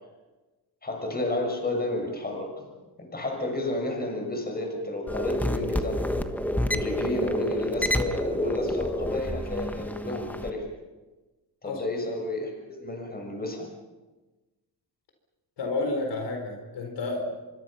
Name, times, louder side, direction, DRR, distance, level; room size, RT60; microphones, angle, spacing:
voice 1, 0.8-2.7 3.0-6.2 6.7-10.6 11.6-13.7, left 1 dB, 20° left, 2 dB, 6.4 m, -31 dB
sound 1, 5.1-10.5, left 1 dB, 5° left, 1.4 m, -29 dB
voice 2, 15.6-17.4, left 2 dB, 75° left, 3 dB, 4.5 m, -30 dB
25.5 x 24.5 x 5.9 m, 1.2 s
cardioid pair, 130°, 42 cm